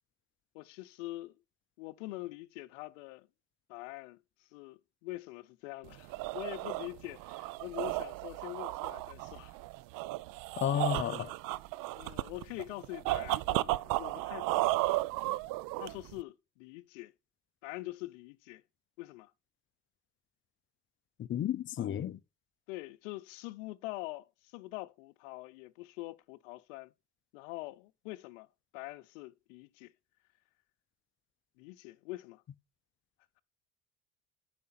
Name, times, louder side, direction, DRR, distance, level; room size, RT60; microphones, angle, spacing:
voice 1, 0.5-1.4 1.8-3.3 3.7-9.6 10.7-10.9 11.9-14.8 15.8-17.1 17.6-18.6 19.0-19.3 22.7-26.9 27.3-28.5 28.7-29.9 31.6-32.4, left 19 dB, 80° left, 0.6 m, -44 dB
sound 1, 5.9-16.2, right 18 dB, 60° right, 0.5 m, -34 dB
voice 2, 10.6-11.3 21.2-22.2, left 10 dB, 30° left, 0.5 m, -32 dB
8.4 x 5.0 x 4.2 m
hypercardioid pair, 70°, 37 cm